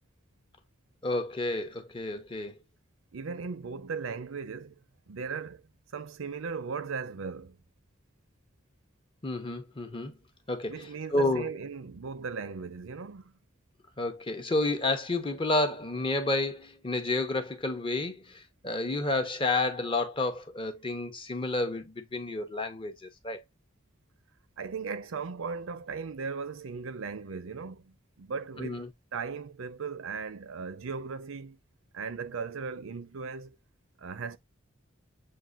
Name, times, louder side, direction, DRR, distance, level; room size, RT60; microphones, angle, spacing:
voice 1, 1.0-2.5 9.2-10.1 10.5-10.8 11.1-11.5 14.0-23.4 28.6-28.9, left 2 dB, 25° left, 0.8 m, -30 dB
voice 2, 3.1-4.8 5.1-5.7 5.9-7.6 10.7-13.3 24.6-28.8 29.1-31.6 31.9-33.6 34.0-34.4, right 5 dB, 80° right, 0.6 m, -37 dB
7.5 x 2.5 x 2.4 m
head